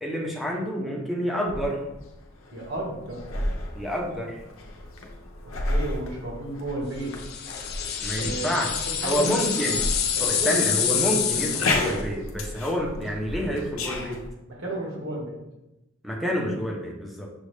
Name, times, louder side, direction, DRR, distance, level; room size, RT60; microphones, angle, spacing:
voice 1, 0.0-1.8 3.7-4.4 8.0-8.7 9.0-9.8 10.2-14.2 16.0-17.3, equal, ahead, -2 dB, 0.7 m, -28 dB
sound 1, 1.5-14.3, left 2 dB, 80° left, 0.7 m, -33 dB
voice 2, 2.5-3.3 5.7-7.2 8.1-9.4 10.1-10.7 14.5-15.4, right 2 dB, 60° right, -4 dB, 1.6 m, -33 dB
sound 2, 7.2-12.0, left 8 dB, 50° left, 0.4 m, -27 dB
6.3 x 2.4 x 3.3 m, 0.94 s
head